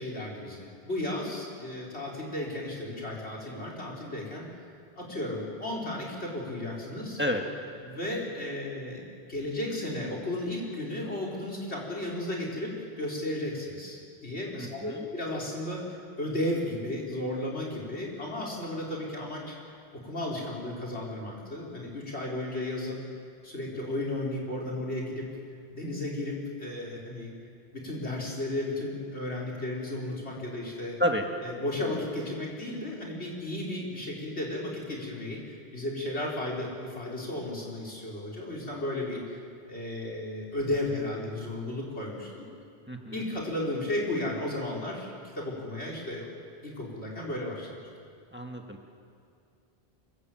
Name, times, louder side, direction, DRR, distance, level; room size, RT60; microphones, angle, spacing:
voice 1, 0.0-4.5 5.0-7.2 7.8-9.0 9.3-19.5 20.0-23.0 23.4-25.3 25.7-27.3 27.7-31.0 31.4-39.4 39.7-42.4 43.1-46.3 46.6-47.8, left 1 dB, 75° left, -1 dB, 5.1 m, -34 dB
voice 2, 14.6-15.0 31.0-31.2 42.9-43.2 48.3-48.8, equal, 10° right, 2 dB, 1.8 m, -30 dB
25.5 x 23.5 x 7.8 m, 2.4 s
omnidirectional pair, 1.1 m